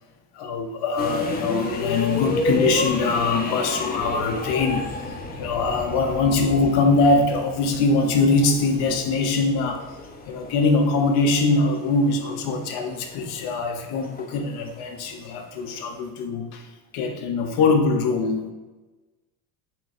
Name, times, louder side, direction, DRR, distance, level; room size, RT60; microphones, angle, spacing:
voice 1, 0.3-9.8 10.3-16.7 16.9-18.5, left 3 dB, 60° left, 5 dB, 0.7 m, -22 dB
sound 1, 1.0-16.1, left 2 dB, 25° left, 0.5 m, -32 dB
3.7 x 2.4 x 4.1 m, 1.2 s
supercardioid pair, 105°, 43 cm